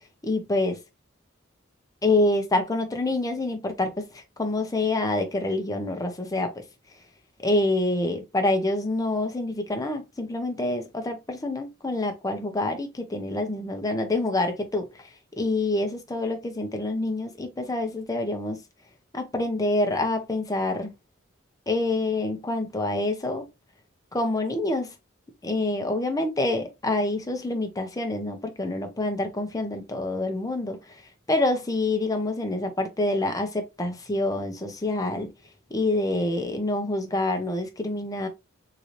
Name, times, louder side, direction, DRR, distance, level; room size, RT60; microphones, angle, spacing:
voice 1, 0.2-0.8 2.0-6.6 7.4-14.9 15.4-18.6 19.1-20.9 21.7-23.5 24.1-24.9 25.4-31.0 31.3-35.3 35.7-38.3, left 2 dB, 15° left, 0.8 m, -27 dB
3.8 x 2.8 x 3.1 m
head